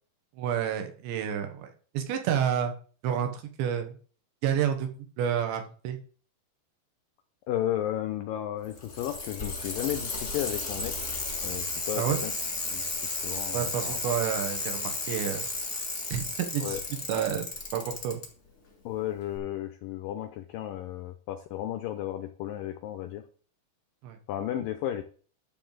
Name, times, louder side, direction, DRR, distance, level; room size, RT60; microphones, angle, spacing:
voice 1, 0.4-2.7 3.0-4.0 4.4-4.9 5.2-6.0 12.0-12.2 13.5-15.5 16.1-16.8 17.1-18.2 24.0-24.2, right 9 dB, 85° right, 5 dB, 3.6 m, -29 dB
voice 2, 7.5-11.0 11.4-12.3 12.7-12.9 13.2-14.0 16.6-16.8 18.8-23.2 24.3-25.0, left 12 dB, 90° left, 8 dB, 1.9 m, -33 dB
Bicycle, 8.6-18.3 19.4-19.5, left 3 dB, 45° left, 0.9 m, -33 dB
11.5 x 4.0 x 7.8 m, 0.41 s
omnidirectional pair, 5.0 m